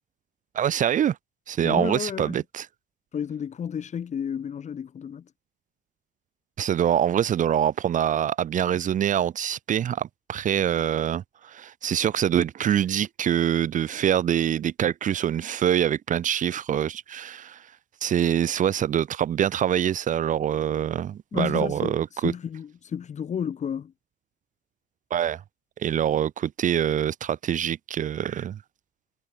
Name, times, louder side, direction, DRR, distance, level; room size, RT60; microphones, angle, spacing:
voice 1, 0.5-1.2 1.5-2.7 6.6-17.7 18.0-22.3 25.1-25.4 25.8-28.6, right 10 dB, 50° right, 1.2 m, -25 dB
voice 2, 1.6-2.4 3.1-5.2 21.3-22.0 22.2-23.9, left 8 dB, 45° left, 5.0 m, -31 dB
cardioid pair, 110°, 17 cm